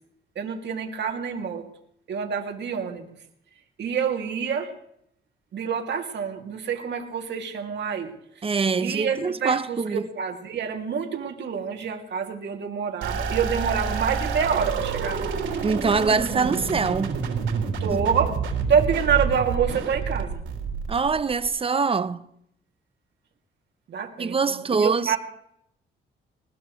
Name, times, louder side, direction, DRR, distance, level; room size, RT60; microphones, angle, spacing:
voice 1, 0.4-1.7 2.1-3.1 3.8-4.7 5.5-8.1 8.8-15.4 17.8-18.4 18.7-20.4 23.9-25.2, right 7 dB, 60° right, 2.7 m, -27 dB
voice 2, 8.4-10.0 15.6-17.1 20.9-22.2 24.2-25.2, right 4 dB, 30° right, 0.8 m, -24 dB
sound 1, 13.0-21.5, right 5 dB, 80° right, 3.7 m, -28 dB
20.5 x 20.0 x 3.2 m
cardioid pair, 90°, 20 cm